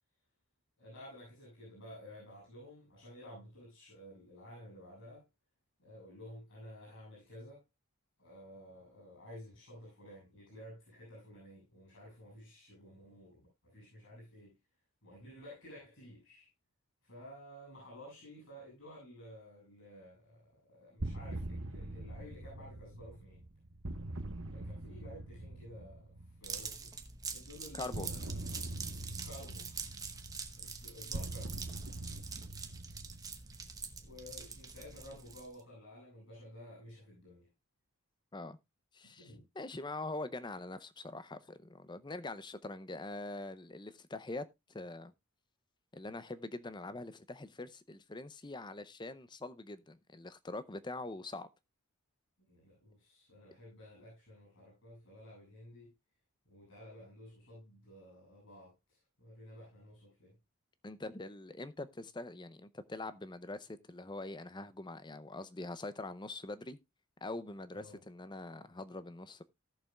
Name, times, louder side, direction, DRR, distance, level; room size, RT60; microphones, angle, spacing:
voice 1, 0.8-5.2 5.8-7.6 8.2-14.5 15.0-16.5 17.0-20.4 20.7-23.5 24.5-26.9 27.3-28.6 29.2-29.9 30.5-31.5 34.0-37.5 39.3-39.4 52.5-55.9 56.5-60.4 67.7-68.0, equal, 65° left, 7.4 m, -53 dB
sound 1, 21.0-26.7 27.9-34.2, right 1 dB, 60° right, 1.1 m, -43 dB
sound 2, 26.4-35.6, right 5 dB, 15° right, 0.9 m, -45 dB
voice 2, 27.7-28.1 38.3-38.6 38.9-45.1 45.9-51.5 60.8-66.8 67.2-69.4, left 2 dB, 20° left, 0.6 m, -44 dB
18.0 x 6.8 x 2.3 m
head